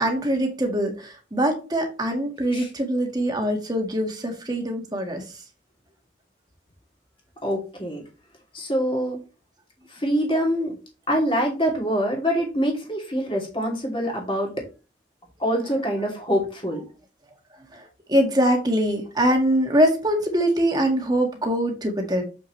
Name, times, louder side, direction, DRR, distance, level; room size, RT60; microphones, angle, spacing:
voice 1, 0.0-5.4 15.6-16.1 17.7-22.2, equal, 20° right, 3 dB, 1.7 m, -23 dB
voice 2, 7.4-8.0 8.5-9.2 9.9-10.7 11.1-14.5 15.4-16.8, equal, 30° left, -1 dB, 2.7 m, -25 dB
7.1 x 6.2 x 3.1 m, 0.32 s
head